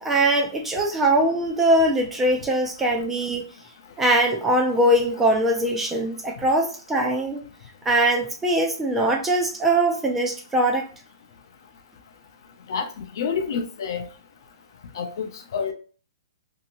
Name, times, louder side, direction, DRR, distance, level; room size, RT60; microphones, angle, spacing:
voice 1, 0.0-3.4 4.0-7.4 7.9-10.8, right 1 dB, 5° right, 0.4 m, -21 dB
voice 2, 13.2-14.1 14.9-15.7, left 6 dB, 50° left, 0.5 m, -28 dB
2.7 x 2.7 x 2.9 m
hypercardioid pair, 165°, 3 cm